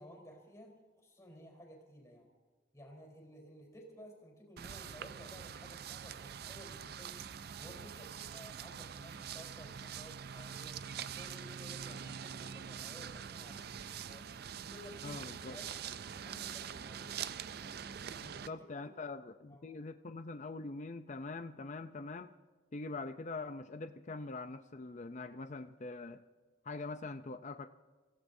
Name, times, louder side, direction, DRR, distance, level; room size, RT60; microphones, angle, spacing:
voice 1, 0.0-2.3 2.7-7.3 7.6-10.8 11.0-14.3 14.6-15.8 16.2-17.2 17.6-18.9 19.5-19.6, equal, 15° left, 1 dB, 3.9 m, -55 dB
sound 1, 4.6-18.5, right 8 dB, 55° right, 0.4 m, -44 dB
voice 2, 15.0-15.6 18.5-22.3 22.7-26.2 26.6-27.7, left 3 dB, 40° left, 8 dB, 0.5 m, -43 dB
28.5 x 16.0 x 2.7 m, 1.4 s
head